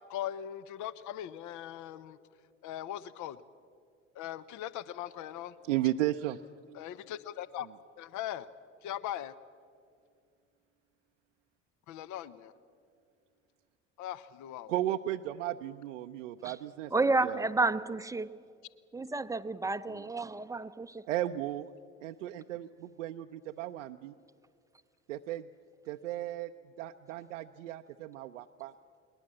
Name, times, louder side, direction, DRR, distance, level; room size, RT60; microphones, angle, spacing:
voice 1, 0.1-2.2 2.6-3.4 4.2-5.5 6.7-7.7 8.0-8.5 8.8-9.3 11.9-12.5 14.0-14.7, left 11 dB, 50° left, 17 dB, 0.8 m, -39 dB
voice 2, 5.6-6.4 14.7-16.9 17.2-17.4 19.9-20.0 21.1-21.7 22.0-24.1 25.1-25.4 25.9-26.5 26.8-28.7, right 14 dB, 80° right, 5 dB, 0.5 m, -35 dB
voice 3, 16.9-18.3 18.9-21.0, right 3 dB, 10° right, 14 dB, 0.6 m, -30 dB
20.5 x 20.5 x 7.4 m, 2.3 s
figure-of-eight pair, 55°, 37 cm